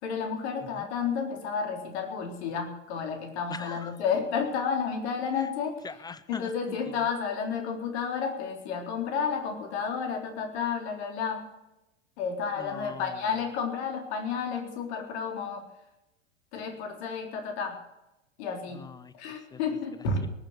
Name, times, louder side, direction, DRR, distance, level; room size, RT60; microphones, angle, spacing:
voice 1, 0.0-5.8 6.3-11.4 12.2-15.7 16.5-17.8 18.4-18.8 19.1-20.3, left 6 dB, 55° left, 4 dB, 3.7 m, -31 dB
voice 2, 3.5-4.0 5.4-5.5 5.8-7.1 12.6-13.3 18.7-19.6, left 5 dB, 10° left, 15 dB, 0.5 m, -43 dB
19.0 x 7.6 x 8.0 m, 0.94 s
figure-of-eight pair, 95°, 38 cm